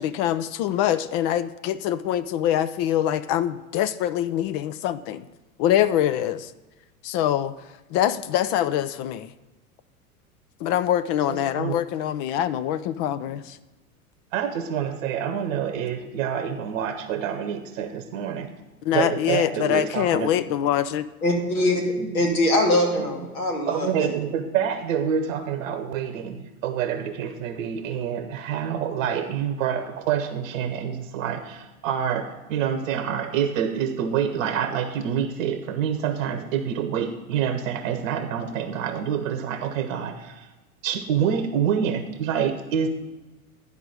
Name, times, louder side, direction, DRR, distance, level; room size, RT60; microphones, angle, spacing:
voice 1, 0.0-5.3 5.6-6.5 7.0-9.3 10.6-13.6 18.8-21.1, left 11 dB, 40° left, 14 dB, 0.4 m, -24 dB
voice 2, 11.3-11.7 14.3-18.5 18.9-20.3 22.0-22.1 23.7-40.5 40.8-42.9, right 8 dB, 60° right, 8 dB, 0.9 m, -27 dB
voice 3, 21.2-24.1, left 1 dB, 70° left, 1 dB, 2.5 m, -23 dB
11.0 x 4.9 x 6.5 m, 1.1 s
hypercardioid pair, 90°, 44 cm